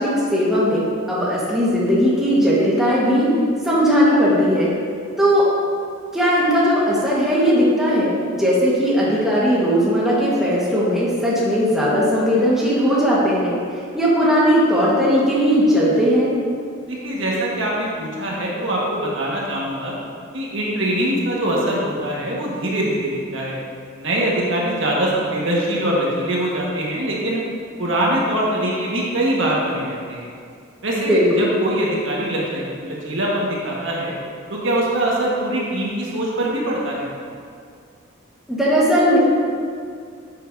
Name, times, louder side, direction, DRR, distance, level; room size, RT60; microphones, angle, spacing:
voice 1, 0.0-3.3 3.6-4.7 5.2-5.4 6.1-8.1 8.4-13.5 13.9-16.3 30.9-31.4 38.5-39.2, equal, ahead, -8 dB, 1.5 m, -18 dB
voice 2, 16.9-19.9 20.3-23.6 24.0-27.4 27.8-30.3 30.8-34.1 34.5-37.1, right 1 dB, 65° right, -4 dB, 1.6 m, -23 dB
10.5 x 7.5 x 2.8 m, 2.3 s
head